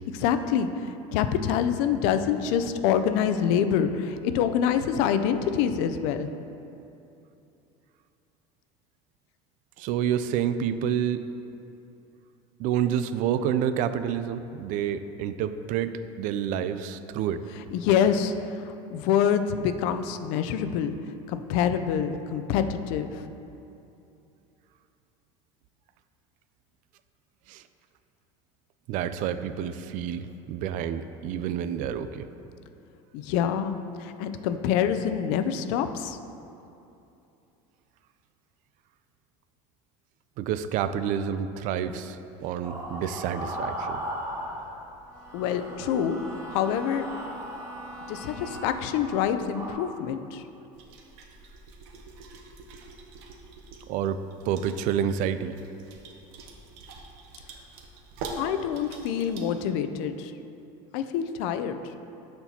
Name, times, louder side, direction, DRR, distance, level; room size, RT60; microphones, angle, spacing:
voice 1, 0.1-0.7 1.1-6.3 17.7-18.3 18.9-21.0 21.3-23.3 33.1-33.7 34.0-36.2 45.3-46.2 46.5-47.1 48.1-50.4 58.4-60.3 60.9-61.8, left 8 dB, 75° left, 9 dB, 0.4 m, -26 dB
voice 2, 9.8-11.3 12.6-17.4 27.5-27.6 28.9-32.3 40.4-44.0 53.9-55.6, right 9 dB, 60° right, 12 dB, 0.4 m, -29 dB
sound 1, 42.6-44.9 45.2-49.7, equal, 20° right, 1.6 m, -37 dB
Bowed string instrument, 45.0-49.1, right 1 dB, 5° left, 0.6 m, -45 dB
sound 2, 50.7-59.6, right 3 dB, 80° right, 0.8 m, -44 dB
12.5 x 4.4 x 2.8 m, 2.8 s
supercardioid pair, 110°, 15 cm